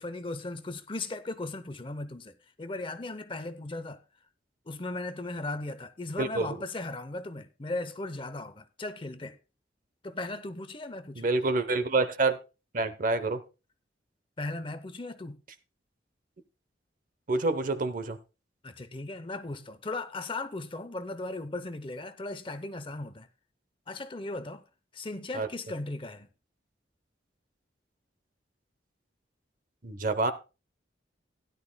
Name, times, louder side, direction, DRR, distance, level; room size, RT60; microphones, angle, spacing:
voice 1, 0.0-4.0 4.7-9.4 10.0-11.3 14.4-15.4 18.6-23.3 23.9-24.6 24.9-26.3, left 2 dB, 30° left, 0.7 m, -37 dB
voice 2, 6.2-6.6 11.1-12.4 12.7-13.4 17.3-18.2 25.3-25.5 29.8-30.3, right 3 dB, 45° right, 0.8 m, -27 dB
16.0 x 11.0 x 2.2 m
head